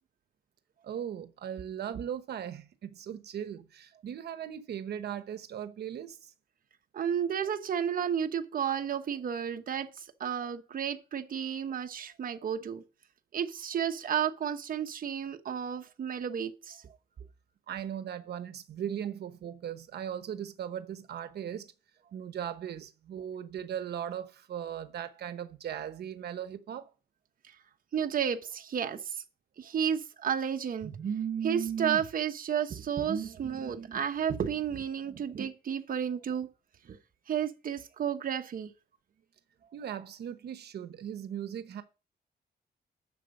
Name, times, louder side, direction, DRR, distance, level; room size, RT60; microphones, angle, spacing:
voice 1, 0.8-6.3 17.7-21.7 22.1-26.9 36.9-37.0 39.7-41.8, right 9 dB, 85° right, 1.0 m, -38 dB
voice 2, 6.9-12.8 13.3-16.8 27.9-29.2 29.6-36.5 36.9-37.0 37.3-38.7, right 8 dB, 60° right, 1.0 m, -32 dB
11.0 x 7.0 x 5.4 m
cardioid pair, 115°, 17 cm